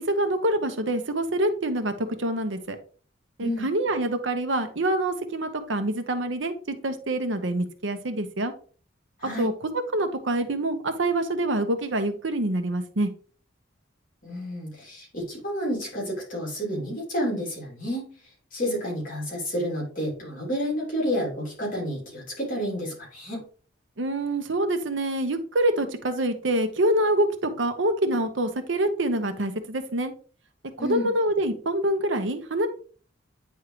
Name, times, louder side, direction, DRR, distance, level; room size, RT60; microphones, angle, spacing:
voice 1, 0.0-2.8 3.4-8.5 9.4-9.5 9.9-13.1 24.0-30.1 30.8-32.7, right 1 dB, 65° right, 8 dB, 0.9 m, -26 dB
voice 2, 14.2-18.0 18.5-23.4 30.8-31.1, equal, 45° left, -3 dB, 3.1 m, -30 dB
9.4 x 3.6 x 3.1 m, 0.40 s
head